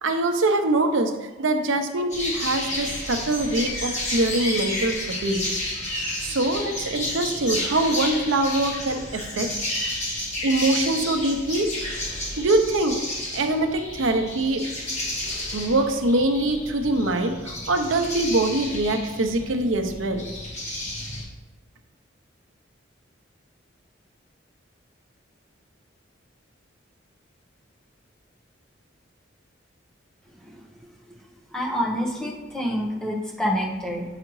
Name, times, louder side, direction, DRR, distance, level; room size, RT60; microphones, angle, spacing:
voice 1, 0.0-5.4 6.2-9.5 10.4-11.7 12.4-14.7 15.5-20.3, right 2 dB, 80° right, 6 dB, 0.7 m, -23 dB
sound 1, 2.1-21.2, left 1 dB, 35° left, 1.9 m, -31 dB
voice 2, 31.5-34.0, equal, 5° left, -3 dB, 0.9 m, -27 dB
7.6 x 4.8 x 3.1 m, 1.2 s
head